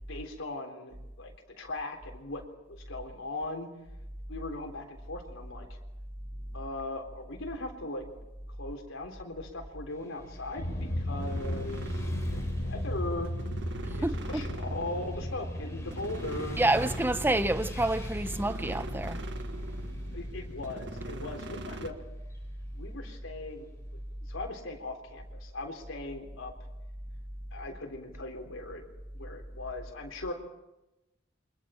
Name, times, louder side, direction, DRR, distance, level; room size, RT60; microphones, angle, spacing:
voice 1, 0.1-3.7 4.3-5.7 6.5-8.1 8.6-13.3 14.0-16.6 20.1-22.0 22.7-23.7 24.3-26.5 27.5-28.8 29.1-30.3, left 2 dB, 90° left, 3.8 m, -39 dB
Motorcycle / Traffic noise roadway noise, 9.9-24.0, left 1 dB, 15° left, 5.6 m, -48 dB
sound 1, 10.6-22.0, equal, 60° left, 4.0 m, -37 dB
sound 2, 11.2-21.9, right 2 dB, 60° right, 1.6 m, -45 dB
voice 2, 14.0-14.4 16.6-19.2, right 1 dB, 10° right, 0.8 m, -28 dB
29.5 x 25.0 x 4.5 m
head